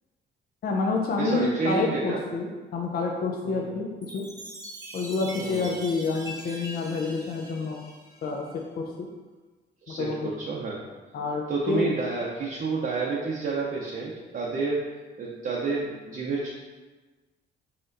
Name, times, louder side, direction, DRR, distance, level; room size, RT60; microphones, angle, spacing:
voice 1, 0.6-4.3 4.9-7.8 8.2-8.5 8.8-9.1 9.9-10.3 11.1-11.9, left 4 dB, 50° left, 0 dB, 0.5 m, -28 dB
voice 2, 1.2-2.2 3.4-3.8 5.4-5.7 9.8-10.8 11.5-14.8 15.2-16.5, right 4 dB, 45° right, -4 dB, 0.7 m, -29 dB
Chime, 4.0-8.6, equal, 20° right, 0.9 m, -42 dB
4.2 x 3.6 x 2.6 m, 1.3 s
cardioid pair, 90°, 20 cm